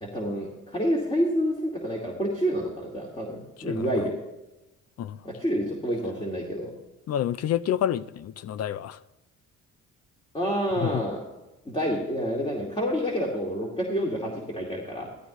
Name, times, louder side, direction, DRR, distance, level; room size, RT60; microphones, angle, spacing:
voice 1, 0.0-4.2 5.2-6.7 10.3-11.2 11.7-15.1, equal, 20° left, 2.3 m, -28 dB
voice 2, 7.1-9.0 10.8-11.0, left 10 dB, 55° left, 0.5 m, -28 dB
14.5 x 13.0 x 3.1 m
cardioid pair, 90°, 30 cm